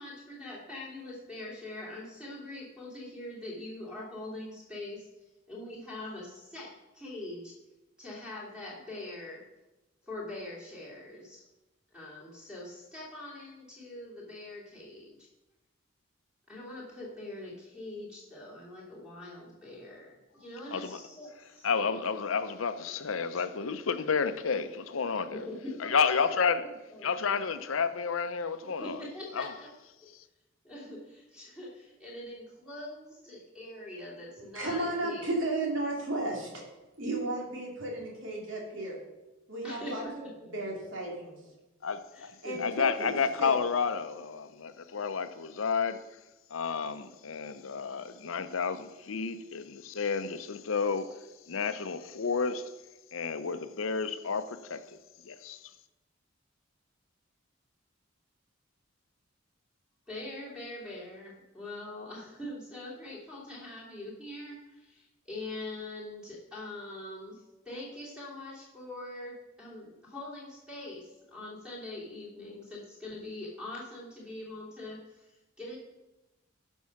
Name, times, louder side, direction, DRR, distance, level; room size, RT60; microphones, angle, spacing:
voice 1, 0.0-5.1 5.5-7.5 8.0-9.4 10.0-11.4 11.9-15.3 16.5-22.0 22.7-22.9 23.3-23.4 25.3-27.5 28.8-29.7 30.6-35.3 39.6-40.3 42.1-42.8 44.9-45.0 60.1-75.8, left 2 dB, 5° right, 2.7 m, -43 dB
voice 2, 21.6-25.5 25.8-26.7 27.0-29.0 29.3-29.5 41.8-46.0 46.5-51.2 51.5-52.7 53.1-55.0 55.2-55.7, left 5 dB, 75° left, 0.7 m, -31 dB
voice 3, 34.5-36.6 37.0-39.0 39.5-40.2 40.5-41.4 42.4-43.6, right 2 dB, 65° right, 2.7 m, -34 dB
12.0 x 5.4 x 5.9 m
head